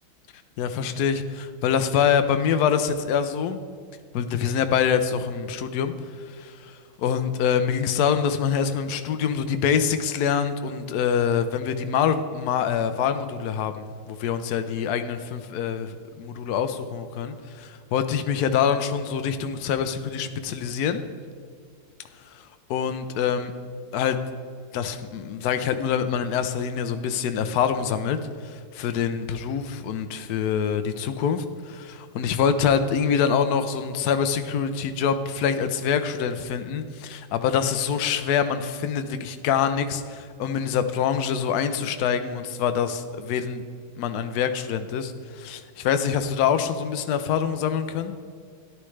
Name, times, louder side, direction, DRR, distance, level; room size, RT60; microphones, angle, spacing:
voice 1, 0.6-3.6 4.1-5.9 6.3-21.0 22.7-23.5 23.9-24.2 24.7-28.2 28.4-43.6 44.0-48.1, left 7 dB, 65° left, 9 dB, 1.0 m, -25 dB
13.5 x 10.5 x 3.2 m, 2.1 s
omnidirectional pair, 2.1 m